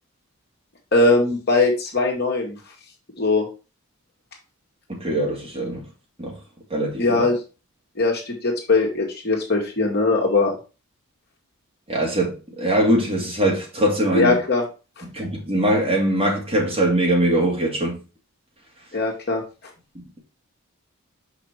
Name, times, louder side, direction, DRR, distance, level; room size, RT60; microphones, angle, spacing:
voice 1, 0.9-2.6 3.2-3.5 7.0-7.4 8.0-10.5 14.1-14.6 15.0-15.1 18.9-19.4, left 3 dB, 45° left, 1.8 m, -20 dB
voice 2, 4.9-5.8 6.2-6.4 6.7-7.2 11.9-14.4 15.1-18.0, right 1 dB, 25° right, 2.5 m, -22 dB
6.2 x 5.0 x 4.6 m
head